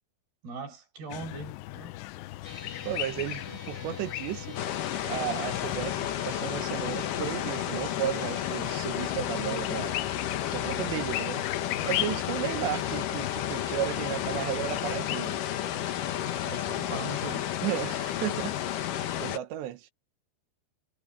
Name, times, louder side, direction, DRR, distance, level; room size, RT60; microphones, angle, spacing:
voice 1, 0.4-2.0 16.5-17.7, right 3 dB, 65° right, 7.2 m, -40 dB
sound 1, 1.1-19.4, left 18 dB, 85° left, 2.9 m, -38 dB
sound 2, 2.4-15.0, left 4 dB, 20° left, 1.8 m, -48 dB
voice 2, 2.8-4.6 5.0-10.0 10.5-15.4 17.6-18.5 18.9-19.9, right 13 dB, 90° right, 3.4 m, -34 dB
sound 3, 4.6-19.4, left 11 dB, 65° left, 2.5 m, -32 dB
omnidirectional pair, 4.9 m